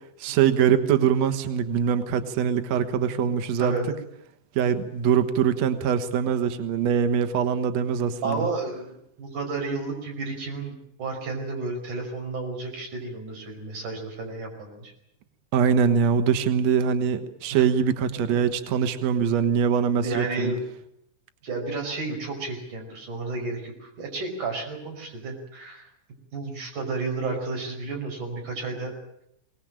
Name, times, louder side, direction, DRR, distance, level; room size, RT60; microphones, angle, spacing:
voice 1, 0.2-3.7 4.5-8.5 15.5-20.5, right 7 dB, 80° right, 9 dB, 1.5 m, -23 dB
voice 2, 8.2-14.9 17.5-17.6 18.2-18.4 20.0-20.6 21.4-25.9 26.3-28.9, right 3 dB, 45° right, 1 dB, 6.6 m, -32 dB
23.5 x 19.0 x 8.9 m, 0.77 s
omnidirectional pair, 5.3 m